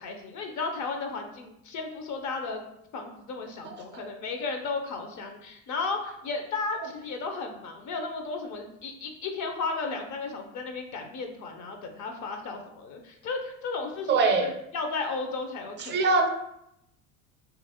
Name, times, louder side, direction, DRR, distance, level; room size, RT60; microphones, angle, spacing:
voice 1, 0.0-2.6 2.9-16.0, left 4 dB, 45° left, 4 dB, 0.5 m, -34 dB
voice 2, 14.1-14.4 15.8-16.3, right 4 dB, 30° right, 4 dB, 0.5 m, -23 dB
2.8 x 2.5 x 2.7 m, 0.81 s
hypercardioid pair, 85°, 40 cm